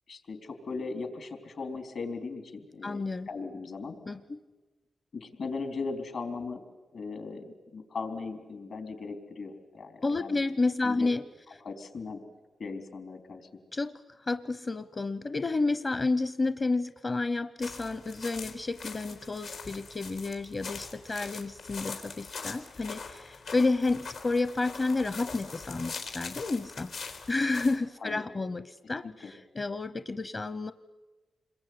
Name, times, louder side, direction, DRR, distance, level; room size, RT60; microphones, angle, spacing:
voice 1, 0.1-4.0 5.1-6.6 6.9-10.4 10.8-11.1 11.6-12.2 12.6-13.6 28.0-28.2 29.0-29.3, left 4 dB, 70° left, 7 dB, 4.0 m, -38 dB
voice 2, 2.8-3.3 4.1-4.4 10.0-11.2 13.7-26.9 27.3-30.7, left 3 dB, 40° left, 13 dB, 0.9 m, -30 dB
sound 1, 17.6-27.8, left 4 dB, 85° left, 4.0 m, -42 dB
27.5 x 22.0 x 9.7 m, 1.2 s
cardioid pair, 55°, 0 cm